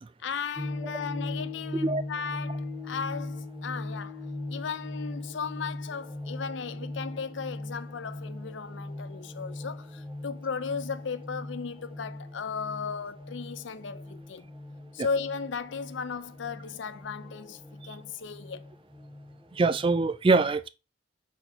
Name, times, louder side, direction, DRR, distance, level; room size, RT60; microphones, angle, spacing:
voice 1, 0.2-14.5 14.9-18.6, left 5 dB, 70° left, 0.5 m, -36 dB
sound 1, 0.5-20.0, left 2 dB, ahead, 0.9 m, -39 dB
voice 2, 19.5-20.7, right 3 dB, 25° right, 0.3 m, -24 dB
4.5 x 4.2 x 5.5 m
head